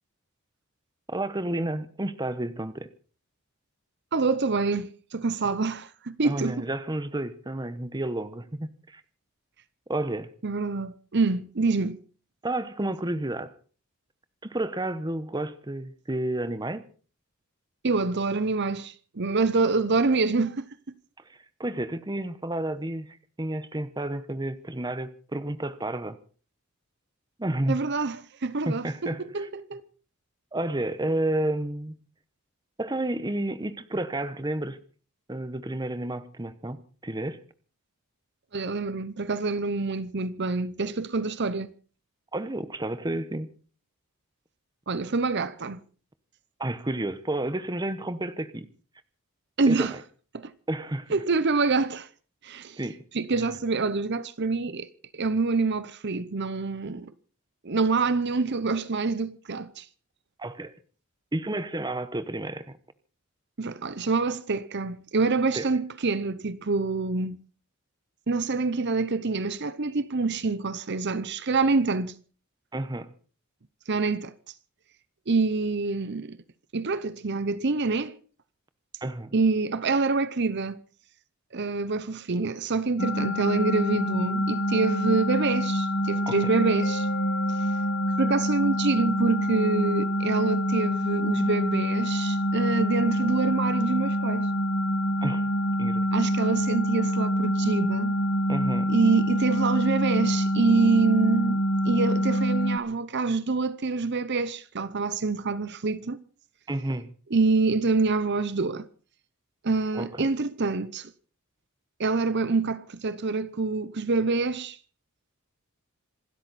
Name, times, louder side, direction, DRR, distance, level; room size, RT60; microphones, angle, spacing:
voice 1, 1.1-2.9 6.2-9.0 9.9-10.3 12.4-13.5 14.4-16.8 21.6-26.2 27.4-27.8 28.7-29.5 30.5-32.0 32.8-34.8 35.3-37.4 42.3-43.5 46.6-48.7 49.7-50.0 50.7-51.1 52.8-53.0 53.3-53.5 60.4-60.7 61.3-62.7 65.5-65.7 72.7-73.1 79.0-79.3 86.3-86.4 95.2-95.5 95.8-96.1 98.5-98.9 106.7-107.1 109.9-110.3, right 1 dB, 20° right, 1.0 m, -31 dB
voice 2, 4.1-6.7 10.4-12.0 17.8-20.7 27.7-29.8 38.5-41.7 44.9-45.8 49.6-49.9 50.3-50.5 51.1-52.1 52.4-52.8 53.1-54.9 55.1-57.1 57.6-59.9 63.6-67.4 68.3-72.2 73.9-74.3 75.3-76.4 76.7-78.2 79.3-80.8 81.5-87.1 87.5-87.7 88.2-94.5 96.1-98.1 98.9-106.2 107.3-108.9 109.6-111.1 112.0-114.8, right 3 dB, 50° right, 0.8 m, -26 dB
sound 1, 83.0-102.8, equal, 60° left, 1.4 m, -26 dB
Mallet percussion, 86.8-89.4, right 4 dB, 40° left, 1.2 m, -42 dB
26.5 x 13.0 x 4.2 m
head